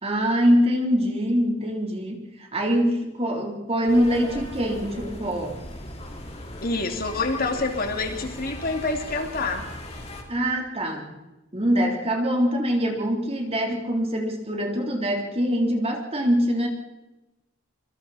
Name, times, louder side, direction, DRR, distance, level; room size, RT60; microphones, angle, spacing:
voice 1, 0.0-5.6 10.3-11.1 11.5-16.7, equal, 30° right, 1 dB, 3.6 m, -24 dB
sound 1, 3.9-10.2, left 1 dB, 35° left, 3.7 m, -38 dB
voice 2, 6.6-9.7, left 3 dB, 50° left, 4 dB, 2.7 m, -27 dB
25.5 x 25.0 x 4.3 m, 1.0 s
head